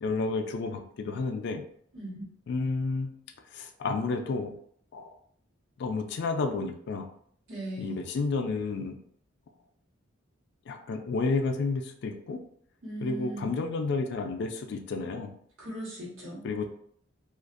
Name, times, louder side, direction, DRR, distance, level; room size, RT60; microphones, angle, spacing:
voice 1, 0.0-1.6 2.5-3.1 3.5-4.5 4.9-5.2 5.8-7.1 7.8-9.0 10.7-12.4 13.0-15.4 16.4-16.7, left 3 dB, 60° left, 5 dB, 0.3 m, -31 dB
voice 2, 1.9-2.2 7.5-8.0 12.8-13.5 15.6-16.5, right 1 dB, 90° right, -6 dB, 1.3 m, -38 dB
2.5 x 2.3 x 2.4 m, 0.63 s
head